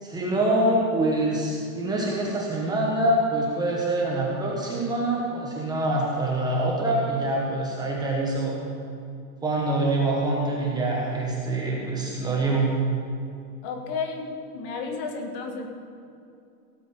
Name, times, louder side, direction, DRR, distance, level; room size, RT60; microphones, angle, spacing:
voice 1, 0.0-8.6 9.4-12.7, right 2 dB, 10° right, -4 dB, 1.1 m, -25 dB
voice 2, 13.6-15.7, left 4 dB, 35° left, 4 dB, 1.5 m, -32 dB
17.0 x 7.5 x 5.4 m, 2.5 s
supercardioid pair, 165°, 48 cm